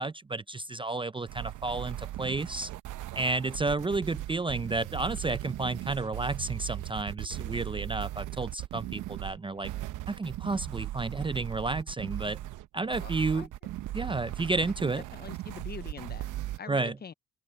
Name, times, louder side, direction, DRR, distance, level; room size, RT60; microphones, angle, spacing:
voice 1, 0.0-2.7 3.1-9.7 10.1-12.4 12.7-13.5 13.9-15.0 16.7-17.0, right 3 dB, 15° right, 0.5 m, -31 dB
sound 1, 1.3-16.6, right 14 dB, 80° right, 0.8 m, -38 dB
voice 2, 13.0-13.5 14.8-16.3 16.6-17.1, left 6 dB, 35° left, 0.7 m, -44 dB
open air
cardioid pair, 90°, 30 cm